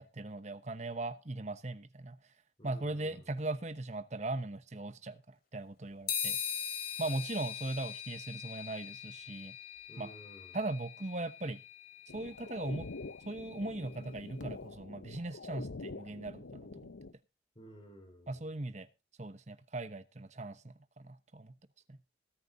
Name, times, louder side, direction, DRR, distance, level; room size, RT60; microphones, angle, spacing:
voice 1, 0.0-2.2 2.6-6.4 7.0-9.6 10.0-10.1 10.5-11.6 12.1-12.9 13.2-16.7 18.3-18.9 19.2-21.6 21.9-22.0, right 2 dB, 40° right, 1.0 m, -39 dB
voice 2, 2.6-3.4 7.0-7.2 9.9-10.6 17.5-18.5, right 1 dB, 30° left, 4.6 m, -54 dB
sound 1, 6.1-13.7, left 9 dB, 55° left, 2.8 m, -41 dB
sound 2, 12.1-17.1, left 3 dB, 85° left, 0.7 m, -46 dB
20.5 x 9.3 x 2.7 m
head